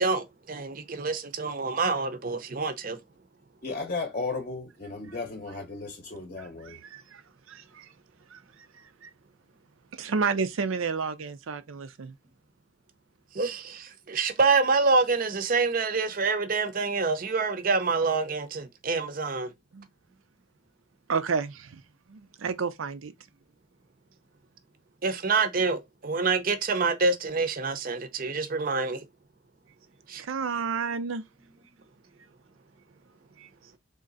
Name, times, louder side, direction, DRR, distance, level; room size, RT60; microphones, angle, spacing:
voice 1, 0.0-3.0 13.3-19.5 25.0-29.0 30.1-30.2, right 4 dB, 45° right, 0.6 m, -26 dB
voice 2, 3.6-6.8, left 3 dB, 40° left, 0.7 m, -34 dB
voice 3, 6.4-7.2 7.5-7.9 8.3-8.4 8.7-9.1 9.9-12.1 19.7-19.9 21.1-21.8 22.1-23.1 30.2-31.2 33.4-33.5, right 5 dB, 85° right, 0.6 m, -31 dB
3.8 x 3.1 x 3.9 m
head